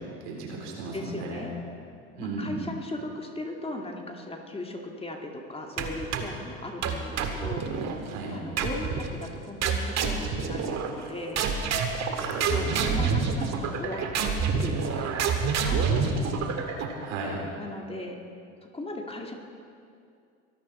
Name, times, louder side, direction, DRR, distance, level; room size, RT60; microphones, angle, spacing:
voice 1, 0.2-1.4 2.2-2.6 8.1-8.3 12.2-13.3 17.0-17.4, right 3 dB, 70° right, -1 dB, 4.0 m, -35 dB
voice 2, 0.9-1.5 2.2-8.0 8.3-11.4 12.5-15.1 15.4-16.6 17.6-18.2 18.7-19.3, left 1 dB, 15° left, 1 dB, 2.1 m, -37 dB
sound 1, 5.8-6.4 6.8-8.0 8.6-9.1 9.6-11.1 11.4-17.1, right 5 dB, 45° right, 1.9 m, -28 dB
23.5 x 11.5 x 4.3 m, 2.4 s
hypercardioid pair, 80°, 37 cm